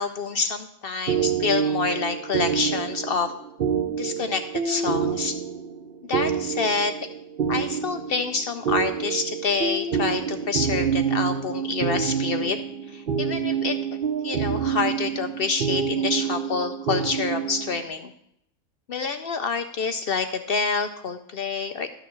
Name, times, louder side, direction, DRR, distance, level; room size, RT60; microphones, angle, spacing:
voice 1, 0.0-3.3 4.0-5.4 6.1-6.9 7.5-12.6 12.9-18.1 18.9-21.9, left 4 dB, 70° left, 8 dB, 0.5 m, -27 dB
sound 1, 1.1-17.8, right 7 dB, 50° right, 0.7 m, -27 dB
12.5 x 6.6 x 6.1 m, 0.78 s
omnidirectional pair, 1.5 m